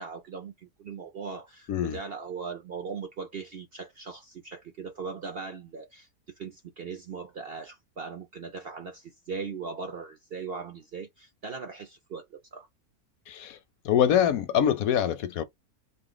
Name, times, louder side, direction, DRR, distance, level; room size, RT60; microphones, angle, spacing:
voice 1, 0.0-6.1 6.4-12.7, right 5 dB, 55° right, 0.7 m, -39 dB
voice 2, 13.3-13.6 13.8-15.4, left 9 dB, 70° left, 0.9 m, -24 dB
3.8 x 2.5 x 3.8 m
omnidirectional pair, 1.7 m